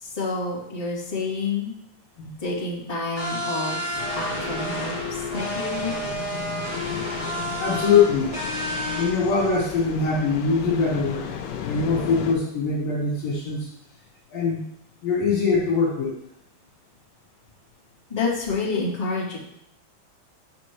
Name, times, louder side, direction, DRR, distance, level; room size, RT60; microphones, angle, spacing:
voice 1, 0.0-1.7 2.4-3.8 4.1-5.9 18.1-19.4, left 3 dB, 15° left, -10 dB, 1.2 m, -28 dB
sound 1, 3.2-9.1, equal, 40° right, 1.0 m, -30 dB
sound 2, 3.9-12.3, left 8 dB, 80° left, 2.4 m, -35 dB
voice 2, 7.6-8.3 9.0-11.3 11.6-13.7 14.3-14.6 15.0-16.2, left 5 dB, 65° left, -5 dB, 2.6 m, -22 dB
9.6 x 6.1 x 3.1 m, 0.78 s
omnidirectional pair, 5.2 m